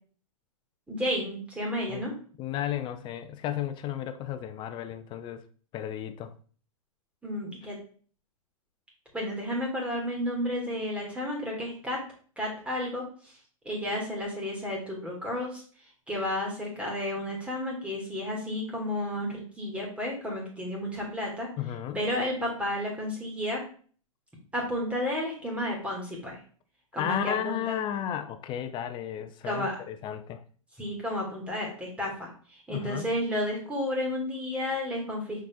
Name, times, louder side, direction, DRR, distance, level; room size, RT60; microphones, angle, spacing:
voice 1, 0.9-2.1 7.2-7.8 9.1-12.0 12.4-13.3 13.6-15.6 16.1-21.5 21.9-23.6 24.5-26.4 26.9-27.8 29.4-29.8 30.8-35.4, left 1 dB, 5° right, -2 dB, 2.5 m, -32 dB
voice 2, 2.4-5.4 5.7-6.3 21.6-22.0 27.0-30.4 32.7-33.1, left 10 dB, 25° left, 9 dB, 0.7 m, -33 dB
6.1 x 4.2 x 3.7 m, 0.43 s
hypercardioid pair, 115°, 18 cm